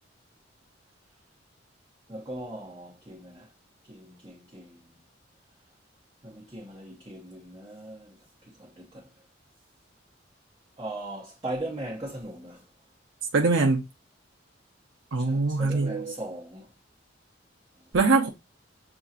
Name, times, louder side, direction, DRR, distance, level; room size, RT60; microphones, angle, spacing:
voice 1, 2.1-3.5 3.9-4.8 6.2-8.2 8.6-9.1 10.8-12.7 15.2-16.7, right 1 dB, 25° right, 0.9 m, -39 dB
voice 2, 13.3-13.8 15.1-16.2 17.9-18.3, right 3 dB, 85° right, 0.7 m, -23 dB
6.9 x 2.8 x 2.4 m
head